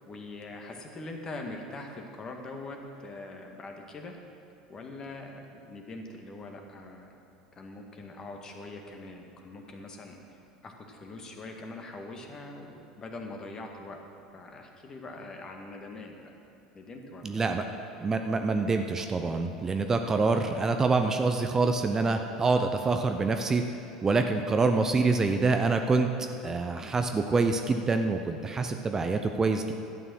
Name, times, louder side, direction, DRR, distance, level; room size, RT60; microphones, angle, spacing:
voice 1, 0.1-4.2 4.7-7.1 7.6-10.2 10.6-14.0 14.3-16.3 16.7-17.7, left 2 dB, 30° left, 3 dB, 1.7 m, -43 dB
voice 2, 17.2-17.6 18.0-23.6 24.0-26.1 26.4-29.7, right 3 dB, 25° right, 6 dB, 0.7 m, -26 dB
12.0 x 9.0 x 6.3 m, 2.6 s
figure-of-eight pair, 75°, 2 cm